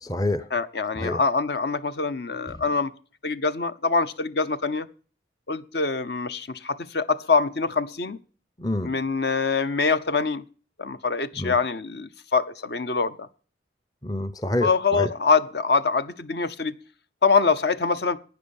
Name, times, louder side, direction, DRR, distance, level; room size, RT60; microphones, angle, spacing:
voice 1, 0.0-0.5 1.0-1.2 2.5-2.6 8.6-8.9 11.4-11.6 14.0-15.1, left 1 dB, 20° left, 14 dB, 0.6 m, -27 dB
voice 2, 0.5-2.9 3.2-4.9 5.5-8.2 8.8-10.4 10.8-13.3 14.6-16.8 17.2-18.2, left 4 dB, 60° left, 12 dB, 0.8 m, -24 dB
12.0 x 9.3 x 7.1 m, 0.41 s
head